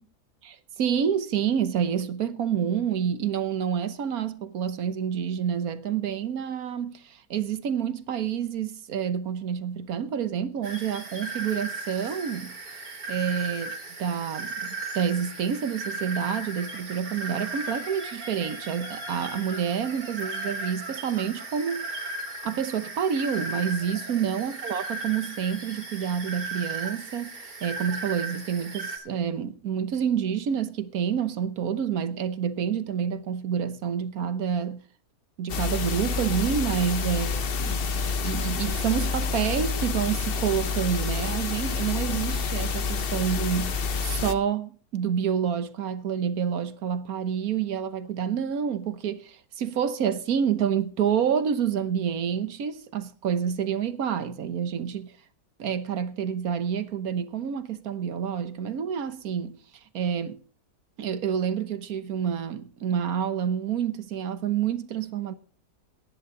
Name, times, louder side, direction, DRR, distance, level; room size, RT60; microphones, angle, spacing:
voice 1, 0.4-12.8 13.1-13.7 14.0-21.8 22.4-34.8 35.4-37.3 37.6-55.1 55.6-59.5 59.9-60.4 61.0-65.4, right 8 dB, 65° right, 1.5 m, -28 dB
sound 1, 10.6-29.0, right 2 dB, 80° right, 3.2 m, -36 dB
sound 2, 35.5-44.3, left 5 dB, 45° left, 0.8 m, -28 dB
18.0 x 10.5 x 3.8 m
omnidirectional pair, 1.7 m